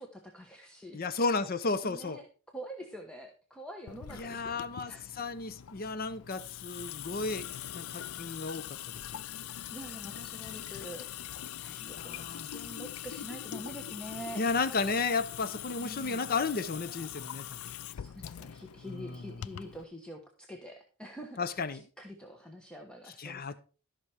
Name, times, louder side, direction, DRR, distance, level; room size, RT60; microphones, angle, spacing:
voice 1, 0.0-1.0 1.8-2.3 2.5-5.0 9.7-14.5 15.8-16.2 17.8-23.6, right 1 dB, 5° left, 1.2 m, -46 dB
voice 2, 0.9-2.2 4.1-7.5 7.7-8.8 11.7-12.5 14.3-17.7 18.9-19.2 21.4-21.8 23.2-23.5, left 4 dB, 45° left, 0.7 m, -33 dB
Water tap faucet / Sink (filling or washing) / Drip, 3.9-19.8, left 11 dB, 90° left, 0.4 m, -43 dB
14.0 x 6.0 x 4.8 m
head